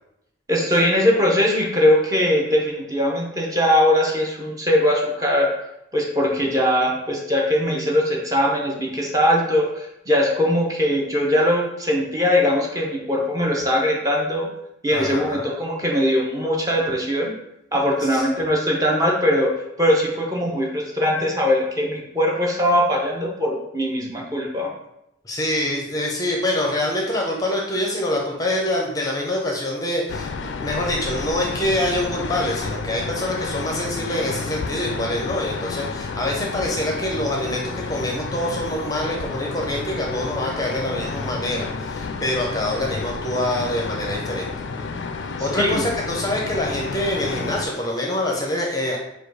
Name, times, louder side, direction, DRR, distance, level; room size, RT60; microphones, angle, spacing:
voice 1, 0.5-5.5 5.9-14.5 14.8-17.3 17.7-24.7 45.6-45.8, left 1 dB, 20° right, -2 dB, 0.7 m, -21 dB
voice 2, 14.9-15.5 18.0-18.3 25.2-44.5 45.4-49.0, left 1 dB, 20° left, -1 dB, 0.6 m, -25 dB
sound 1, 30.1-47.7, left 4 dB, 70° left, 0.4 m, -30 dB
4.8 x 2.3 x 4.7 m, 0.84 s
head